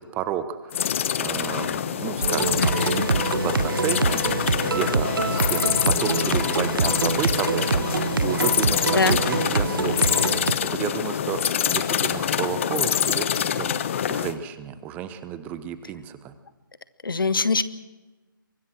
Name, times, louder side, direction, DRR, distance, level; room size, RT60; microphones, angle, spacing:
voice 1, 0.0-4.2 4.6-10.2 10.6-16.3, right 10 dB, 15° right, 12 dB, 1.0 m, -32 dB
sound 1, 0.7-14.3, left 9 dB, 35° left, 1.1 m, -25 dB
sound 2, 2.2-10.5, right 4 dB, 70° right, 0.9 m, -25 dB
voice 2, 2.6-3.1 8.9-9.2 17.0-17.6, left 4 dB, 75° left, 14 dB, 1.5 m, -23 dB
24.0 x 20.5 x 6.2 m, 1.2 s
figure-of-eight pair, 150°, 12 cm